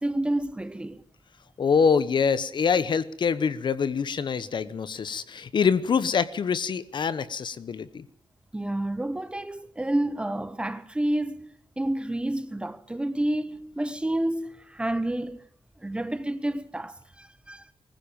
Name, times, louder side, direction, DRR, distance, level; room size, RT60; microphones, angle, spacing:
voice 1, 0.0-1.0 8.5-11.5 11.8-15.5 15.8-17.7, right 1 dB, 10° right, 1.0 m, -29 dB
voice 2, 1.6-8.0, left 6 dB, 60° left, 1.1 m, -25 dB
21.0 x 15.0 x 8.9 m
wide cardioid pair, 145°, 9 cm